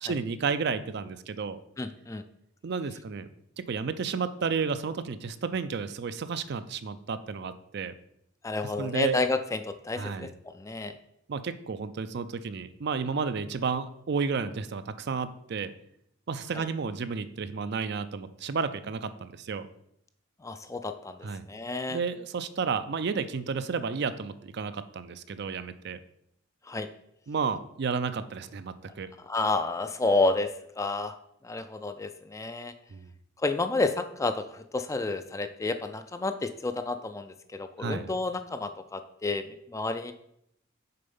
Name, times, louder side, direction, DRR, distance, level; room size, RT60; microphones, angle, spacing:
voice 1, 0.0-1.6 2.6-3.3 3.6-7.9 8.8-9.2 10.0-10.3 11.3-15.7 16.3-19.7 21.2-21.4 21.9-26.0 27.3-29.1 32.9-33.1 37.8-38.1, right 5 dB, 55° right, 12 dB, 0.4 m, -32 dB
voice 2, 1.8-2.2 8.4-11.0 16.5-16.7 20.4-22.0 26.7-26.9 29.2-31.2 31.4-32.7 33.4-40.1, left 3 dB, 15° left, 9 dB, 0.3 m, -30 dB
6.7 x 4.3 x 5.4 m, 0.75 s
head